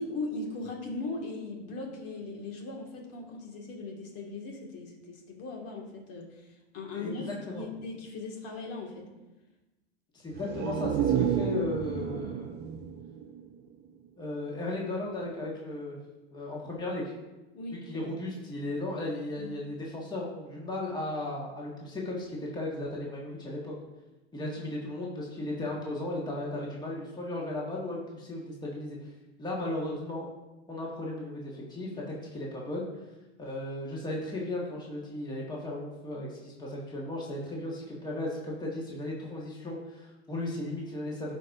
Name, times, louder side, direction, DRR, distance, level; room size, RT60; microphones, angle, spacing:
voice 1, 0.0-7.3 7.5-9.1 17.5-18.1 19.4-19.5 24.6-24.7, left 3 dB, 45° left, 0 dB, 2.1 m, -39 dB
voice 2, 6.9-7.6 10.1-12.5 14.2-16.0 16.3-17.1 17.9-23.7 24.3-29.1 29.4-30.3 30.7-32.9 33.4-41.3, left 2 dB, 10° left, -4 dB, 1.8 m, -35 dB
sound 1, 10.3-14.1 14.4-14.5, right 9 dB, 30° right, 0.5 m, -31 dB
14.0 x 5.2 x 2.7 m, 1.1 s
hypercardioid pair, 105°, 34 cm